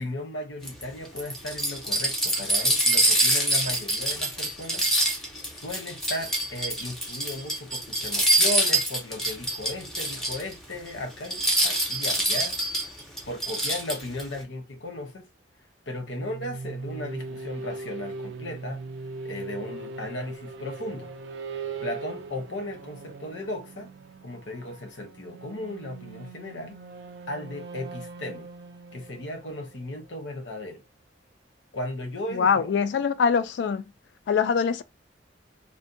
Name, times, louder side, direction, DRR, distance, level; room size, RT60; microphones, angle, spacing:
voice 1, 0.0-4.9 5.2-12.7 13.3-15.3 15.9-18.8 19.2-21.1 21.8-23.9 24.2-26.8 27.3-28.5 28.9-30.8 31.7-32.7, left 1 dB, 85° left, 0.8 m, -36 dB
sound 1, 0.6-10.5 10.9-11.0 11.2-14.2, right 1 dB, 5° left, 0.6 m, -25 dB
sound 2, 15.9-30.6, right 4 dB, 70° right, 0.4 m, -40 dB
voice 2, 32.3-33.8 34.3-34.8, left 6 dB, 65° left, 0.3 m, -23 dB
2.6 x 2.1 x 2.5 m
head